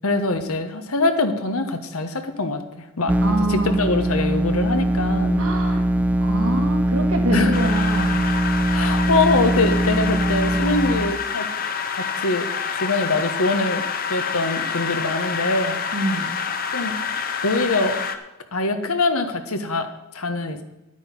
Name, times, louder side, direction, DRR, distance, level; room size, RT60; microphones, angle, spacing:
voice 1, 0.0-3.1 3.5-5.4 7.3-7.6 8.7-11.5 11.9-12.5 12.7-13.8 14.1-15.8 16.7-17.0 17.4-18.0 18.5-19.9 20.1-20.6, left 3 dB, 85° left, 8 dB, 1.3 m, -23 dB
sound 1, 3.1-11.1, right 1 dB, 5° right, 0.3 m, -21 dB
voice 2, 3.2-3.8 5.4-8.2 15.9-16.3, right 1 dB, 80° right, 2 dB, 2.1 m, -26 dB
sound 2, 7.5-18.2, left 6 dB, 40° left, 0.8 m, -27 dB
11.5 x 9.1 x 5.4 m, 0.98 s
head